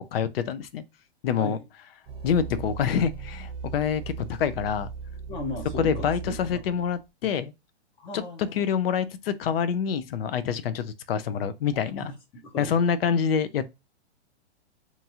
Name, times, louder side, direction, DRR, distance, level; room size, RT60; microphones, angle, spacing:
voice 1, 0.1-0.8 1.2-1.6 2.2-4.9 5.8-7.5 8.1-8.2 8.5-12.1 12.6-13.7, left 7 dB, 60° left, 0.5 m, -26 dB
sound 1, 2.1-7.0, right 5 dB, 10° right, 0.8 m, -38 dB
voice 2, 5.3-6.6 7.2-7.3 8.0-8.6 11.8-12.7, left 1 dB, 15° left, 0.6 m, -37 dB
2.8 x 2.4 x 2.8 m
hypercardioid pair, 140°, 34 cm